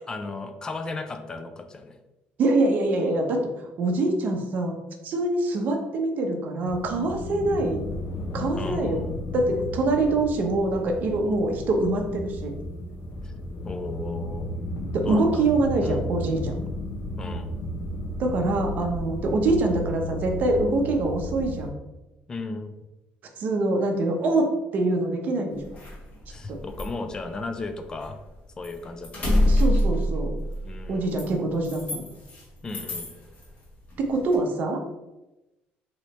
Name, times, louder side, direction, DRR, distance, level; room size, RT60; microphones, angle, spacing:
voice 1, 0.1-2.0 8.6-9.1 13.2-13.3 13.6-14.6 15.0-15.5 15.8-16.0 17.2-17.5 22.3-22.7 26.3-28.2 28.6-29.5 30.6-31.2 32.6-33.1, left 3 dB, 20° left, 6 dB, 0.3 m, -35 dB
voice 2, 2.4-3.4 3.8-4.8 5.0-7.8 8.3-9.0 9.3-12.5 14.9-16.6 18.2-21.8 23.4-25.7 26.5-26.6 29.5-30.3 30.9-32.0 34.0-34.8, right 2 dB, 45° right, 2 dB, 0.7 m, -24 dB
sound 1, 6.7-21.7, left 1 dB, 60° left, 0.7 m, -33 dB
sound 2, 25.5-28.3 28.6-32.4 32.7-33.5 33.9-34.4, left 1 dB, 35° left, 1.1 m, -26 dB
3.1 x 2.8 x 4.1 m, 0.99 s
cardioid pair, 160°, 4 cm